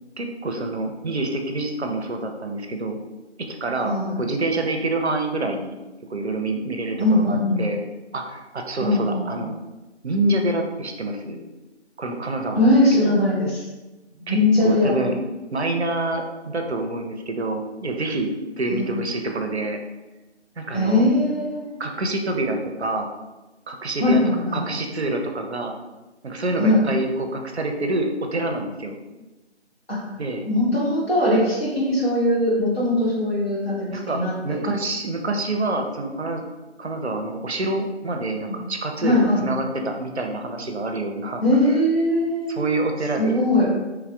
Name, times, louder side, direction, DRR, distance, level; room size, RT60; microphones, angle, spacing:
voice 1, 0.2-3.0 3.6-5.8 6.1-7.8 8.1-9.5 10.0-11.4 12.0-13.2 14.3-14.4 14.6-15.2 15.5-18.3 18.6-19.8 20.6-21.1 21.8-23.1 23.7-24.2 24.5-25.7 26.2-29.0 30.2-30.5 33.9-36.4 36.8-41.4 42.5-43.4, right 2 dB, 65° right, 4 dB, 0.5 m, -27 dB
voice 2, 3.8-4.2 7.0-7.6 8.8-9.4 12.6-13.7 14.2-15.0 18.7-18.9 20.7-21.8 24.0-24.7 26.6-26.8 29.9-30.0 30.4-34.7 38.4-38.6 39.0-39.4 41.4-42.6 43.2-43.7, left 1 dB, 55° left, -5 dB, 1.1 m, -20 dB
3.2 x 2.4 x 2.3 m, 1.1 s
figure-of-eight pair, 175°, 35 cm